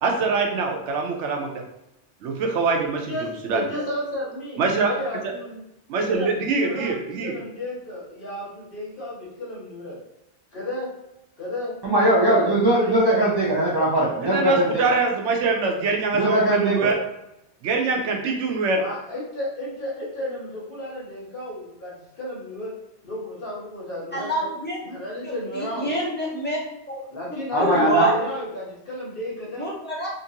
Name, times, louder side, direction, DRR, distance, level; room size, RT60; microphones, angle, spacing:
voice 1, 0.0-1.5 2.2-3.7 4.6-4.9 5.9-7.3 14.2-17.0 17.6-18.8, right 4 dB, 90° right, 2 dB, 0.9 m, -24 dB
voice 2, 3.1-5.6 6.0-10.0 10.5-10.9 11.4-11.7 12.2-13.2 14.8-15.0 18.7-22.7 23.0-24.5 24.8-25.9 27.1-29.7, left 1 dB, 50° left, -6 dB, 1.2 m, -32 dB
voice 3, 11.8-14.8 16.1-16.9 27.5-28.1, right 1 dB, 35° right, -6 dB, 0.4 m, -20 dB
voice 4, 24.1-24.8 25.2-26.6 26.9-27.0 27.5-28.1 29.6-30.1, equal, 10° left, -9 dB, 1.0 m, -26 dB
2.8 x 2.5 x 2.7 m, 0.87 s
omnidirectional pair, 1.2 m